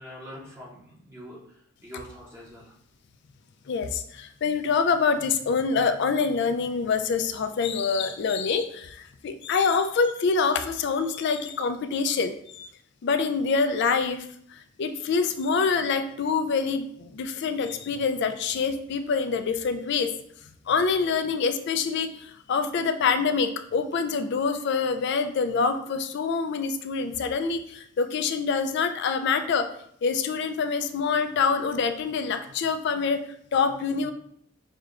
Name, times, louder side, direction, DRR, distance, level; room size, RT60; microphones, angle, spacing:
voice 1, 0.0-2.7, equal, 10° right, -5 dB, 0.7 m, -44 dB
voice 2, 3.7-12.7 13.0-14.3 14.5-20.1 20.7-29.7 30.0-33.2 33.5-34.1, left 5 dB, 55° left, 9 dB, 0.3 m, -26 dB
6.3 x 2.2 x 2.4 m, 0.68 s
head